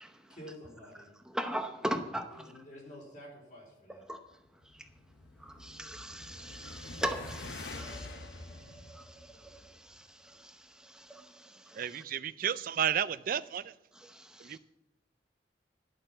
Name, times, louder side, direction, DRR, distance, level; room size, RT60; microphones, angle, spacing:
voice 1, 0.3-1.1 2.3-4.0, equal, 45° left, 4.5 m, -49 dB
voice 2, 1.3-2.5 4.1-4.2 5.6-8.1, right 1 dB, 5° right, 0.7 m, -36 dB
sound 1, 4.5-9.9, left 2 dB, 80° left, 0.9 m, -47 dB
voice 3, 11.7-13.7 14.4-14.6, right 9 dB, 50° right, 0.4 m, -32 dB
11.5 x 6.5 x 7.7 m
head